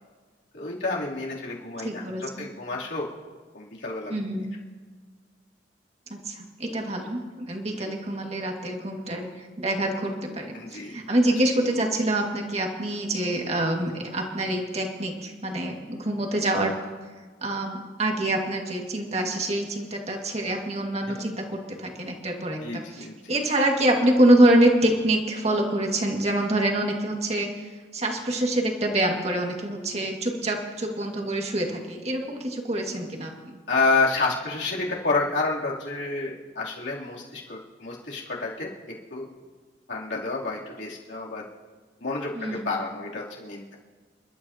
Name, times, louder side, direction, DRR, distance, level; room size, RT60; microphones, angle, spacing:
voice 1, 0.5-3.1 3.5-4.1 7.8-7.9 10.5-11.0 11.2-11.3 21.1-21.2 22.6-23.4 33.7-38.7 39.1-39.3 39.9-41.4 42.0-43.7, left 3 dB, 65° left, -4 dB, 3.1 m, -29 dB
voice 2, 1.8-2.5 4.1-4.5 6.1-16.7 17.4-33.6 42.4-42.7, right 1 dB, 35° right, 1 dB, 2.0 m, -26 dB
29.0 x 12.0 x 2.9 m, 1.5 s
head